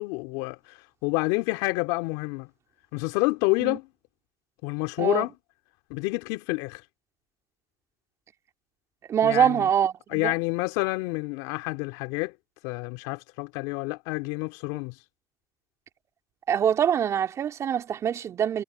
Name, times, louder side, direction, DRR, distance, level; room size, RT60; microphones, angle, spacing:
voice 1, 0.0-2.5 2.9-3.9 4.6-5.3 5.9-6.8 9.2-9.7 10.1-12.3 12.6-14.9, left 25 dB, 75° left, 3.1 m, -28 dB
voice 2, 9.1-10.3 16.5-18.6, right 9 dB, 50° right, 3.1 m, -24 dB
hypercardioid pair, 70°, 7 cm